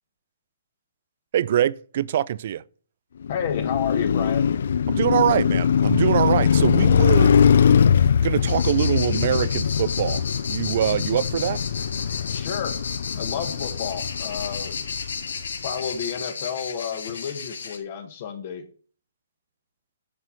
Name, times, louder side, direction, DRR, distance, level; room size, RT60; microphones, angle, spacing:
voice 1, 1.3-2.6 4.9-7.3 8.2-10.2 10.5-11.6, right 10 dB, 40° right, 0.4 m, -23 dB
Car passing by, 3.2-15.5, left 7 dB, 55° left, 0.4 m, -21 dB
voice 2, 3.3-4.5 12.3-12.8 13.1-14.9 15.6-18.6, left 8 dB, 35° left, 1.0 m, -31 dB
sound 1, 8.5-17.8, left 5 dB, 90° left, 2.5 m, -33 dB
9.5 x 4.7 x 6.9 m
hypercardioid pair, 170°, 0 cm